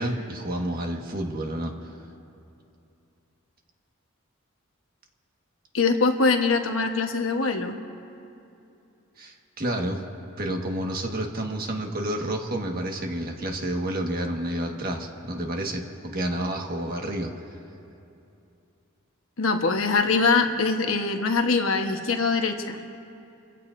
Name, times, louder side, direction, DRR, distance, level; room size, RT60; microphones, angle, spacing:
voice 1, 0.0-1.7 9.2-10.0 10.4-17.3, right 1 dB, 50° right, 1 dB, 1.5 m, -30 dB
voice 2, 5.7-7.8 19.4-22.8, left 4 dB, 90° left, 4 dB, 1.1 m, -23 dB
28.5 x 15.5 x 2.6 m, 2.7 s
head